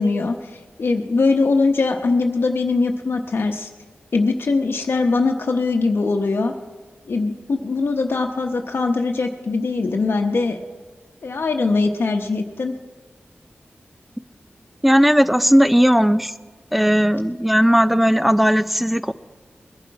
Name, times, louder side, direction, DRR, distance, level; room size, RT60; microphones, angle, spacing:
voice 1, 0.0-3.7 4.1-6.5 7.1-10.6 11.2-12.7, left 3 dB, 75° left, 3 dB, 0.9 m, -21 dB
voice 2, 14.8-16.3 16.7-19.1, equal, 5° right, 13 dB, 0.5 m, -16 dB
21.0 x 11.0 x 4.7 m, 1.4 s
wide cardioid pair, 110°, 4 cm